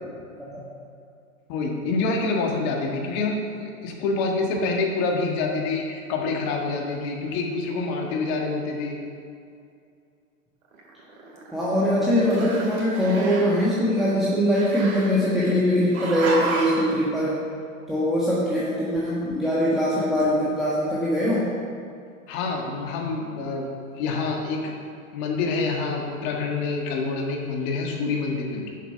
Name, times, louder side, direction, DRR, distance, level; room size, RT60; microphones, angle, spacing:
voice 1, 1.5-9.0 22.3-23.7 23.9-24.7 25.1-28.7, left 3 dB, 45° left, 0 dB, 1.6 m, -27 dB
Growling, 10.7-12.0 12.2-13.7 14.5-15.5 15.9-16.9, right 3 dB, 80° right, 2.1 m, -32 dB
voice 2, 11.5-17.4 17.9-21.5, equal, ahead, -9 dB, 1.3 m, -22 dB
7.2 x 5.9 x 5.7 m, 2.4 s
hypercardioid pair, 120°, 42 cm